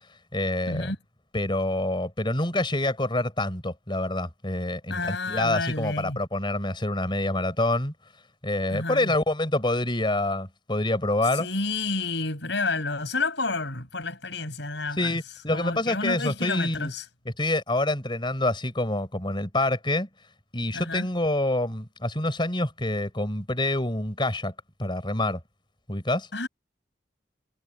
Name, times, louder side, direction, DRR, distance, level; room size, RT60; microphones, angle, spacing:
voice 1, 0.3-0.9 1.3-7.9 8.4-11.5 15.0-16.9 17.4-20.1 20.5-24.5 24.8-25.4 25.9-26.3, left 1 dB, 25° left, 5.6 m, -26 dB
voice 2, 4.9-6.2 8.7-9.1 11.3-15.2 15.5-17.0 20.7-21.1 26.3-26.5, left 3 dB, 70° left, 7.8 m, -30 dB
head